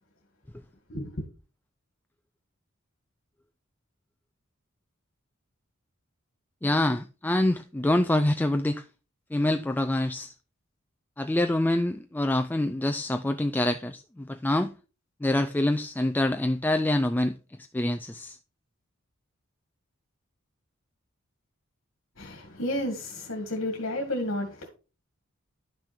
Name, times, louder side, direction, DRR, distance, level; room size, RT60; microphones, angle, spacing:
voice 1, 0.9-1.3 22.2-24.7, left 1 dB, 60° left, 2.1 m, -32 dB
voice 2, 6.6-8.8 9.3-10.3 11.2-14.7 15.2-17.4 17.7-18.4, left 1 dB, 10° left, 0.4 m, -26 dB
11.5 x 6.2 x 4.3 m
head